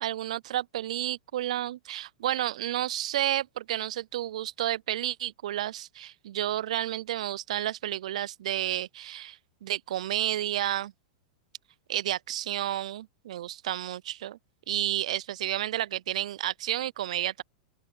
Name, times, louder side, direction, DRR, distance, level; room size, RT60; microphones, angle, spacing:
voice 1, 0.0-10.9 11.9-14.4 14.7-17.4, right 12 dB, 75° right, 0.3 m, -31 dB
open air
hypercardioid pair, 125°, 4 cm